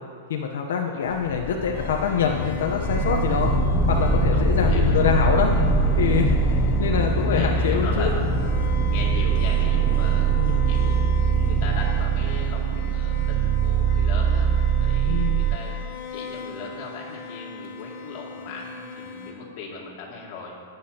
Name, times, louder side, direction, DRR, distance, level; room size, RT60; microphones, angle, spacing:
voice 1, 0.3-3.5 3.9-5.5 6.0-8.4 10.3-10.7 15.0-15.4, left 7 dB, 80° left, 1 dB, 0.8 m, -25 dB
sound 1, 1.1-14.2, left 5 dB, 25° left, 0.6 m, -27 dB
sound 2, 1.7-19.3, left 5 dB, 60° left, 2.0 m, -40 dB
sound 3, 2.9-15.6, right 9 dB, 20° right, 0.3 m, -23 dB
voice 2, 4.3-5.0 7.0-14.5 14.8-15.8 16.1-20.5, left 4 dB, 40° left, -3 dB, 2.4 m, -38 dB
19.5 x 8.2 x 2.9 m, 2.5 s
supercardioid pair, 160°, 0 cm